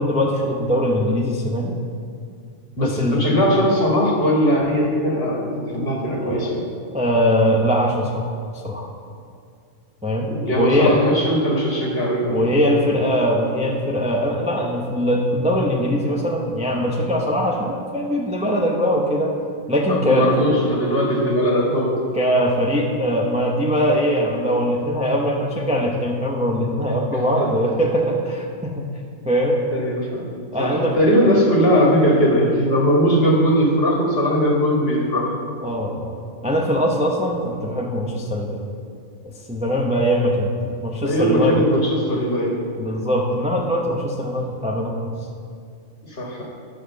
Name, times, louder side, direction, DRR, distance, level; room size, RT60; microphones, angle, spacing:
voice 1, 0.0-1.7 2.8-3.2 6.2-6.5 6.9-8.4 8.6-8.9 10.0-10.3 10.6-11.0 12.3-19.4 19.7-20.3 22.1-28.8 29.2-29.6 30.5-31.0 35.6-36.1 36.4-38.6 39.2-41.6 42.8-45.1, equal, 5° right, -1 dB, 0.6 m, -21 dB
voice 2, 2.8-6.7 10.3-12.5 19.9-22.0 27.4-27.5 29.7-30.3 30.6-35.3 41.0-42.6 46.1-46.4, equal, 45° left, -2 dB, 1.9 m, -19 dB
10.0 x 5.2 x 6.6 m, 2.2 s
omnidirectional pair, 1.5 m